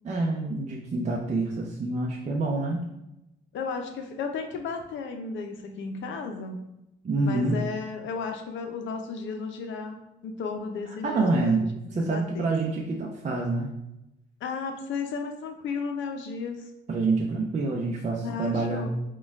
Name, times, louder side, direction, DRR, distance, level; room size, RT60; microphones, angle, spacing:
voice 1, 0.0-2.9 7.0-7.6 11.0-11.6 11.9-13.7 16.9-18.9, right 3 dB, 35° right, -1 dB, 0.6 m, -27 dB
voice 2, 3.5-6.6 7.2-10.0 10.2-11.6 11.9-12.5 14.4-16.7 18.2-18.9, left 5 dB, 75° left, 5 dB, 0.6 m, -34 dB
4.3 x 2.3 x 3.5 m, 0.88 s
cardioid pair, 90°, 20 cm